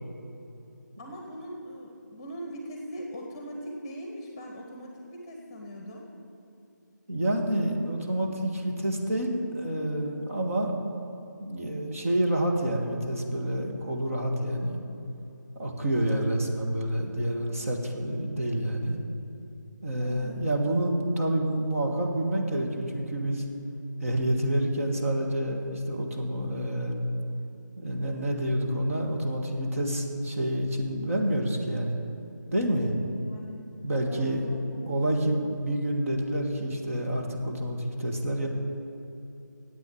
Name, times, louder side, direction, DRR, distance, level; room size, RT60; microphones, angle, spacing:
voice 1, 1.0-6.1 20.0-20.4 33.1-33.6 34.0-35.2, equal, 15° left, 1 dB, 1.1 m, -41 dB
voice 2, 7.1-10.7 11.4-14.8 15.6-19.0 19.8-23.4 24.0-27.0 27.8-32.0 32.5-32.9 33.8-34.4 34.9-38.5, right 1 dB, 45° right, 1 dB, 1.7 m, -28 dB
10.5 x 8.5 x 8.8 m, 2.9 s
figure-of-eight pair, 155°, 10 cm